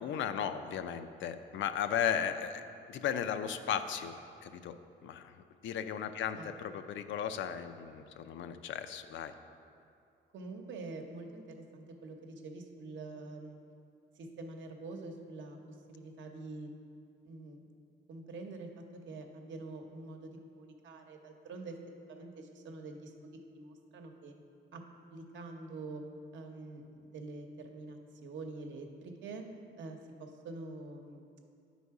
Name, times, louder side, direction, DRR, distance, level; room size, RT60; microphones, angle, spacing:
voice 1, 0.0-2.6 2.9-4.1 4.4-4.8 5.0-9.3, left 8 dB, 70° left, 9 dB, 0.5 m, -35 dB
voice 2, 10.3-13.6 14.2-16.7 17.2-17.7 18.1-21.8 22.1-24.3 24.7-24.8 25.1-26.0 26.3-29.4 29.8-31.3, right 3 dB, 70° right, 3 dB, 0.9 m, -46 dB
9.3 x 4.1 x 4.7 m, 2.4 s
cardioid pair, 90°, 20 cm